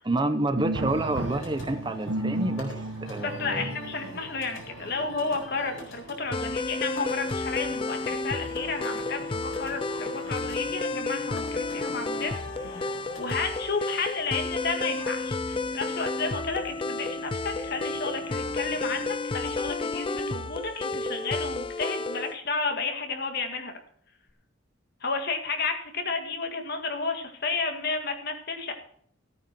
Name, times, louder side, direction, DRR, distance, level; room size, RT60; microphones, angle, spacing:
voice 1, 0.0-3.7, right 2 dB, 20° right, 9 dB, 0.7 m, -29 dB
sound 1, 0.5-19.2, right 2 dB, 80° right, 1.2 m, -39 dB
sound 2, 0.9-13.4, left 1 dB, 90° left, 4.4 m, -45 dB
voice 2, 3.2-23.7 25.0-28.7, left 4 dB, 50° left, 5 dB, 1.9 m, -32 dB
sound 3, 6.3-22.4, left 3 dB, 25° left, 0.4 m, -31 dB
15.0 x 9.1 x 4.5 m, 0.64 s
head